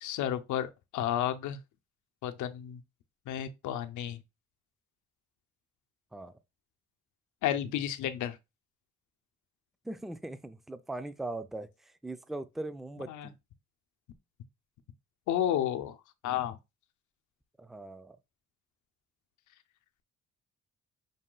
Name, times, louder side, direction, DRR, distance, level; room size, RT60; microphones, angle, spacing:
voice 1, 0.0-1.6 2.2-2.8 3.3-4.2 7.4-8.4 13.1-13.3 15.3-16.0 16.2-16.6, left 11 dB, 80° left, 0.7 m, -32 dB
voice 2, 9.8-13.3 17.6-18.2, right 2 dB, ahead, 0.4 m, -40 dB
5.4 x 2.3 x 3.8 m
cardioid pair, 90°, 30 cm